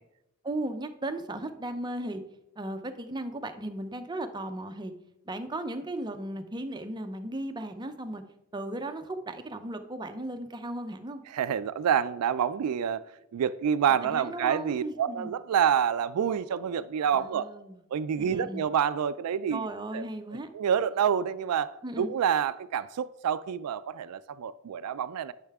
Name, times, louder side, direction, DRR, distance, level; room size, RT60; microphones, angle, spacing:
voice 1, 0.4-2.2 2.6-4.9 5.2-8.2 8.5-11.2 14.1-15.3 17.1-17.8 18.2-18.6 19.5-20.5 21.8-22.1, right 1 dB, 20° right, 0.5 m, -36 dB
voice 2, 11.3-13.0 13.3-17.5 17.9-19.7 19.9-20.0 20.5-21.7 22.0-25.3, right 8 dB, 90° right, 0.3 m, -27 dB
10.5 x 5.6 x 3.5 m
head